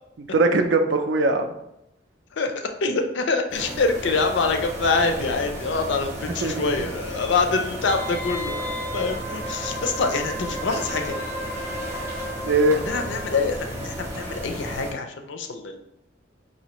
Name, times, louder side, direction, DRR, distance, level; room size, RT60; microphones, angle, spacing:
voice 1, 0.2-1.5 6.4-6.9 12.4-12.8, right 2 dB, 70° right, 6 dB, 0.4 m, -21 dB
voice 2, 2.4-8.6 8.9-11.2 12.9-15.8, left 4 dB, 75° left, 5 dB, 0.4 m, -25 dB
sound 1, 3.5-14.9, right 1 dB, 15° right, 0.7 m, -34 dB
Wind instrument woodwind instrument, 7.9-13.4 13.7-13.8, left 1 dB, 10° left, 0.4 m, -34 dB
4.2 x 2.7 x 2.9 m, 0.83 s
head